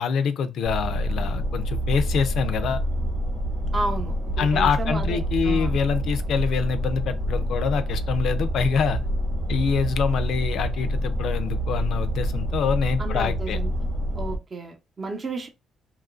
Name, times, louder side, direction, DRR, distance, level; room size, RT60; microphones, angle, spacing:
voice 1, 0.0-2.8 4.4-9.0 9.5-13.6, left 6 dB, 75° left, 0.4 m, -25 dB
sound 1, 0.6-14.4, equal, 75° right, 1.0 m, -27 dB
voice 2, 3.7-5.8 13.0-15.5, right 2 dB, 35° right, 0.7 m, -33 dB
2.9 x 2.4 x 2.4 m
cardioid pair, 90°, 0 cm